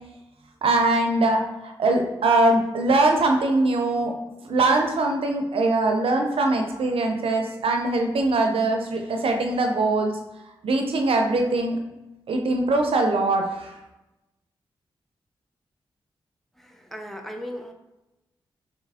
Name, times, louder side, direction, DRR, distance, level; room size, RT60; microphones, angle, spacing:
voice 1, 0.6-4.1 4.5-10.1 10.6-11.8 12.3-13.7, right 2 dB, 70° right, 3 dB, 0.5 m, -22 dB
voice 2, 16.6-17.7, equal, ahead, 3 dB, 0.6 m, -37 dB
3.3 x 3.0 x 3.4 m, 0.99 s
supercardioid pair, 45°, 10 cm